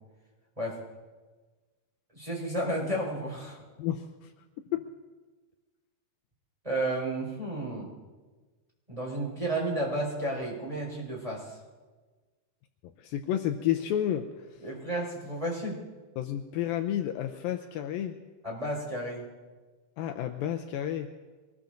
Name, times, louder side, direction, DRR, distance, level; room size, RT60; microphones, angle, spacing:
voice 1, 2.1-3.6 6.6-7.9 8.9-11.6 14.6-15.8 18.4-19.2, right 1 dB, 10° right, -3 dB, 4.5 m, -32 dB
voice 2, 13.0-14.3 16.2-18.2 20.0-21.1, left 11 dB, 80° left, 5 dB, 2.3 m, -30 dB
24.0 x 20.0 x 2.6 m, 1.3 s
omnidirectional pair, 4.4 m